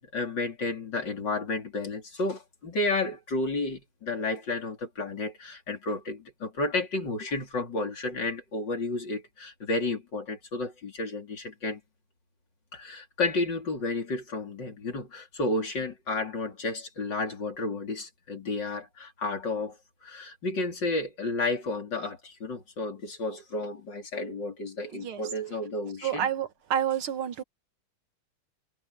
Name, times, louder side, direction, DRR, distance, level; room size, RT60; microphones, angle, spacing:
voice 1, 0.0-11.8 12.7-26.3, left 2 dB, 55° left, 4.2 m, -32 dB
voice 2, 26.0-27.4, right 9 dB, 75° right, 2.2 m, -29 dB
omnidirectional pair, 2.4 m